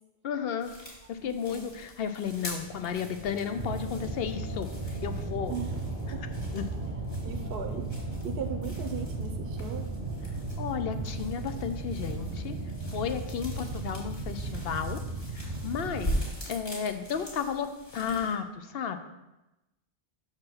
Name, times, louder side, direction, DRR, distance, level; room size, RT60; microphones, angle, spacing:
voice 1, 0.2-0.7 1.1-5.5 6.5-6.6 10.3-12.6 12.9-15.0 15.3-19.1, left 7 dB, 65° left, 9 dB, 0.8 m, -33 dB
sound 1, 0.6-18.3, equal, 35° left, 2.6 m, -42 dB
voice 2, 1.2-1.7 5.5-5.8 6.1-6.2 7.2-9.9, right 7 dB, 65° right, 5 dB, 0.8 m, -38 dB
sound 2, 2.3-15.7, equal, 10° left, 1.2 m, -47 dB
sound 3, 3.6-16.3, right 2 dB, 40° right, 0.8 m, -36 dB
6.3 x 4.9 x 5.6 m, 0.98 s
omnidirectional pair, 1.1 m